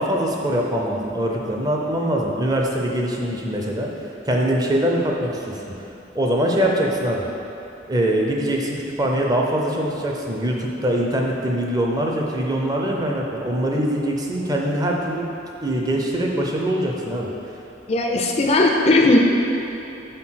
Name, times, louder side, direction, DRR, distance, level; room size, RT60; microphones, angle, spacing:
voice 1, 0.0-3.9 4.3-5.6 6.1-7.2 7.9-15.3 15.6-17.3, right 1 dB, 20° right, -1 dB, 0.5 m, -23 dB
voice 2, 17.9-19.2, left 2 dB, 35° left, 1 dB, 0.4 m, -17 dB
4.4 x 4.1 x 5.7 m, 2.9 s
head